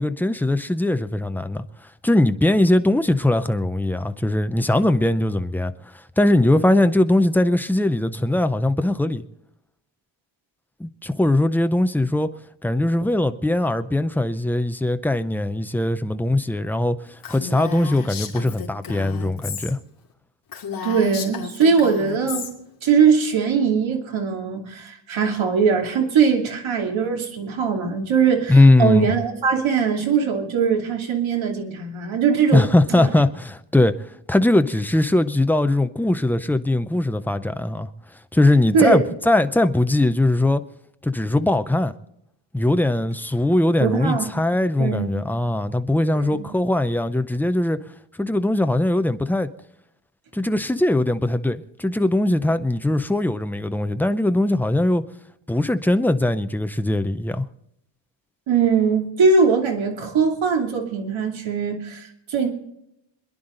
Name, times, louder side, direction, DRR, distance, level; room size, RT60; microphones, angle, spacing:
voice 1, 0.0-1.6 2.0-9.3 10.8-12.3 12.6-19.8 28.5-29.1 32.5-33.9 34.3-37.9 38.3-40.6 41.0-41.9 42.5-47.8 48.2-49.5 50.3-55.0 55.5-57.5, left 1 dB, 5° left, 0.5 m, -20 dB
Female speech woman speaking, 17.2-19.7 20.0-20.1 20.5-22.5, left 7 dB, 45° left, 2.7 m, -33 dB
voice 2, 20.8-22.5 22.8-33.1 38.7-39.0 43.8-44.3 44.8-45.1 46.1-46.5 58.5-62.5, right 5 dB, 75° right, 2.8 m, -21 dB
27.0 x 10.5 x 3.8 m
wide cardioid pair, 165°, 47 cm